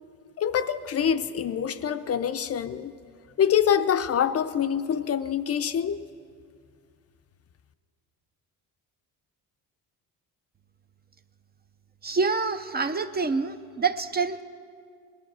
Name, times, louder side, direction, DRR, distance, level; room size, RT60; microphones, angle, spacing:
voice 1, 0.4-2.9 3.4-6.0, left 8 dB, 40° left, 0.5 m, -25 dB
voice 2, 12.0-14.4, right 4 dB, 25° right, 0.5 m, -26 dB
19.0 x 11.5 x 6.1 m
cardioid pair, 120°, 37 cm